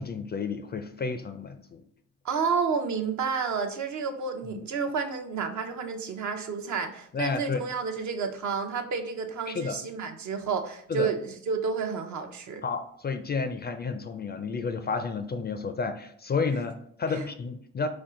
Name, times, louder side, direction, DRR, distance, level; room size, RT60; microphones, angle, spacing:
voice 1, 0.0-1.8 4.4-4.6 7.1-7.6 9.5-9.8 10.9-11.1 12.6-17.9, left 4 dB, 30° left, 8 dB, 0.4 m, -31 dB
voice 2, 2.2-12.6 17.1-17.3, right 5 dB, 55° right, 5 dB, 0.7 m, -30 dB
4.4 x 2.4 x 3.6 m, 0.64 s
supercardioid pair, 70°, 34 cm